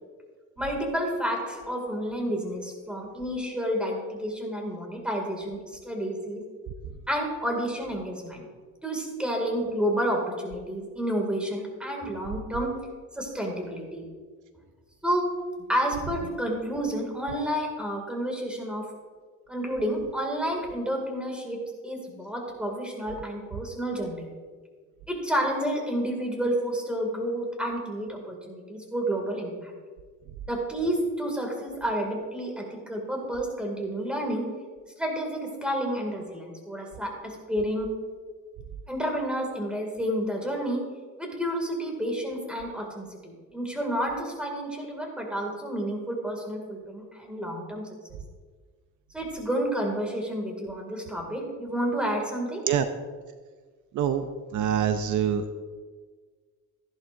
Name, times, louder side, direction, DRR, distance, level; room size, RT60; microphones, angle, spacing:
voice 1, 0.6-6.4 7.1-8.4 8.8-12.7 13.1-14.0 15.0-15.3 15.7-18.8 19.5-21.6 21.8-24.3 25.1-29.7 30.5-34.5 35.0-37.9 38.9-40.8 41.2-47.8 48.1-48.2 49.1-52.6, equal, 5° right, 0 dB, 2.4 m, -30 dB
voice 2, 54.5-55.4, right 9 dB, 60° right, 9 dB, 0.6 m, -24 dB
14.5 x 11.0 x 2.6 m, 1.5 s
cardioid pair, 135°, 34 cm